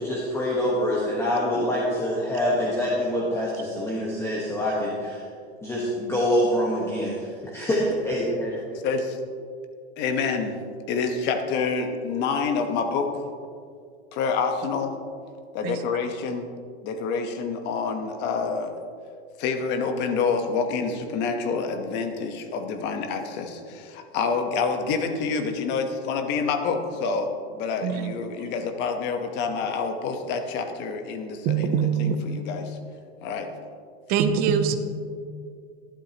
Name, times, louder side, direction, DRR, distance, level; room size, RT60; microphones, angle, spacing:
voice 1, 0.0-5.2 5.6-8.6, equal, 10° left, -5 dB, 1.3 m, -25 dB
voice 2, 8.8-9.2 10.0-10.6 10.9-13.3 14.1-14.9 15.5-16.5 16.8-18.7 19.4-32.8 33.2-33.5, left 5 dB, 35° left, 6 dB, 1.1 m, -27 dB
voice 3, 27.8-28.2 31.4-32.2 34.1-34.8, right 8 dB, 30° right, 9 dB, 0.6 m, -23 dB
13.0 x 11.5 x 2.9 m, 2.3 s
supercardioid pair, 150°, 32 cm